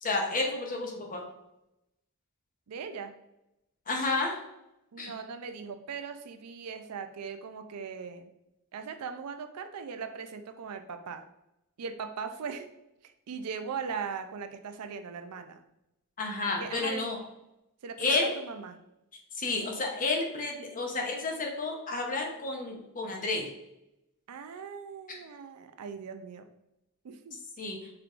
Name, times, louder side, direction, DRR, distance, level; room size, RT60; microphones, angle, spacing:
voice 1, 0.0-1.2 3.9-4.4 5.0-5.1 16.2-17.2 18.0-18.4 19.3-23.5 25.1-25.2 27.6-27.8, left 3 dB, 35° left, 1 dB, 0.8 m, -31 dB
voice 2, 2.7-3.1 4.9-8.3 8.7-11.2 11.8-12.7 13.0-15.6 16.6-17.1 17.8-18.8 24.3-26.5 27.0-27.4, right 6 dB, 90° right, 8 dB, 0.4 m, -39 dB
4.5 x 3.6 x 2.4 m, 0.89 s
head